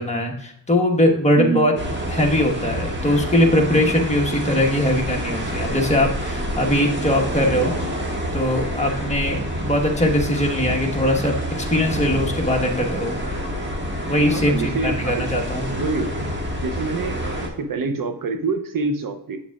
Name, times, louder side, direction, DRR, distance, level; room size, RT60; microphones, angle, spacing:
voice 1, 0.0-1.7 2.1-7.8 8.3-13.1 14.1-15.6, left 1 dB, 15° left, 1 dB, 1.3 m, -21 dB
voice 2, 1.3-1.7 6.6-6.7 14.3-15.3 15.7-16.3 16.5-19.4, right 4 dB, 55° right, 8 dB, 0.7 m, -26 dB
sound 1, 1.8-17.5, equal, 25° right, 1.6 m, -27 dB
8.6 x 7.0 x 2.4 m, 0.75 s
wide cardioid pair, 110°, 41 cm